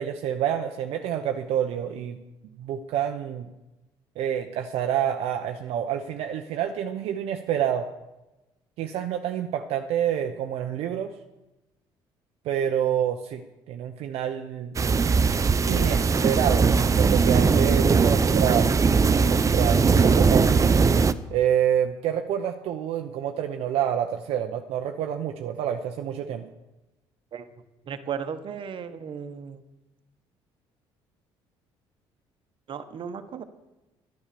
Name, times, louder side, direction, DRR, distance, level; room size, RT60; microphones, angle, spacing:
voice 1, 0.0-2.2 2.6-3.5 4.2-7.9 8.8-11.1 12.4-13.4 13.7-14.7 15.7-18.7 19.2-20.7 21.3-26.4, right 9 dB, 70° right, 5 dB, 0.8 m, -28 dB
sound 1, 14.7-21.1, right 5 dB, 30° right, 0.6 m, -20 dB
voice 2, 27.9-29.6 32.7-33.4, right 7 dB, 55° right, 9 dB, 1.2 m, -35 dB
10.5 x 10.0 x 6.9 m, 1.0 s
supercardioid pair, 80°, 11 cm